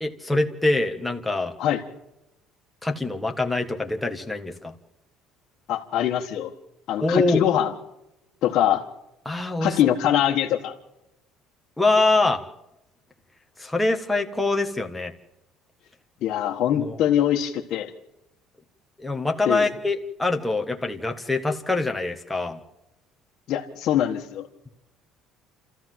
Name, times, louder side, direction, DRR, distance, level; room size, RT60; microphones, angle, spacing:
voice 1, 0.0-1.5 2.8-4.7 7.0-7.4 9.2-9.8 11.8-12.4 13.6-15.1 16.7-17.0 19.0-22.6, left 2 dB, 5° left, 3 dB, 1.5 m, -24 dB
voice 2, 5.7-6.5 6.9-7.7 8.4-8.9 9.6-10.7 16.2-17.9 19.5-19.7 23.5-24.5, left 11 dB, 50° left, -3 dB, 1.7 m, -23 dB
29.0 x 14.0 x 7.7 m, 0.90 s
cardioid pair, 165°, 0 cm